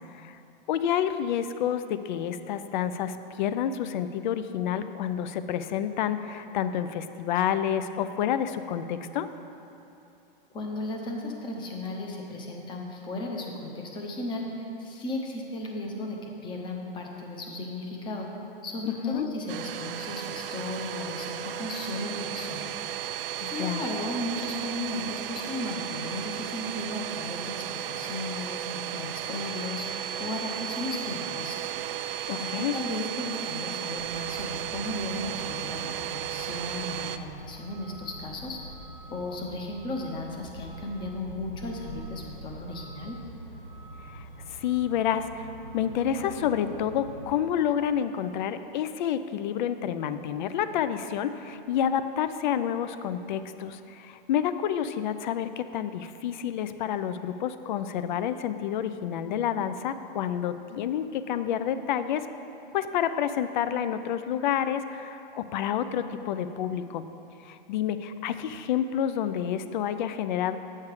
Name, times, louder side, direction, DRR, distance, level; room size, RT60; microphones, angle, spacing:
voice 1, 0.7-9.3 18.9-19.3 23.4-23.8 32.3-32.8 44.1-62.3 62.7-67.0 67.4-70.6, left 9 dB, 55° left, 11 dB, 0.5 m, -29 dB
voice 2, 10.5-18.3 18.6-22.7 23.4-29.8 30.2-31.7 32.4-38.6 39.1-43.2, left 2 dB, 15° left, 1 dB, 0.8 m, -35 dB
Domestic sounds home sounds, 19.5-37.2, right 10 dB, 70° right, 0.5 m, -34 dB
Truck, 34.0-47.3, right 1 dB, 35° left, 1.9 m, -45 dB
8.4 x 6.5 x 4.8 m, 2.8 s
hypercardioid pair, 150°, 29 cm